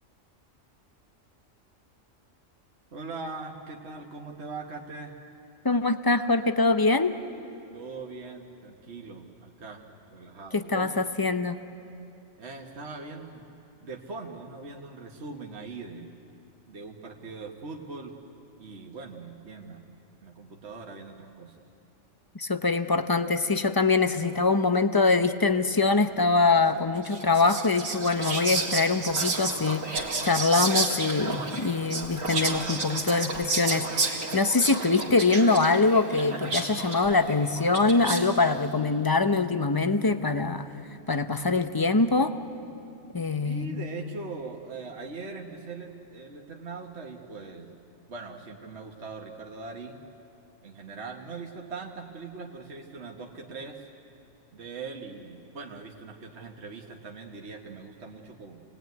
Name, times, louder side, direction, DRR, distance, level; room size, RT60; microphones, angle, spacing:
voice 1, 2.9-5.2 7.7-9.8 10.1-10.9 12.4-13.5 13.8-16.1 16.7-18.2 18.6-19.8 20.2-21.6 22.6-22.8 43.4-47.7 48.1-50.0 50.6-53.9 54.5-58.6, right 4 dB, 55° right, 0 dB, 1.8 m, -41 dB
voice 2, 5.6-7.2 10.5-11.6 22.3-29.8 30.2-40.6 41.1-42.3 43.1-43.7, left 3 dB, 20° left, 10 dB, 0.7 m, -24 dB
Whispering, 27.0-38.5, right 3 dB, 85° right, 2.4 m, -31 dB
28.0 x 19.5 x 9.4 m, 2.8 s
omnidirectional pair, 1.3 m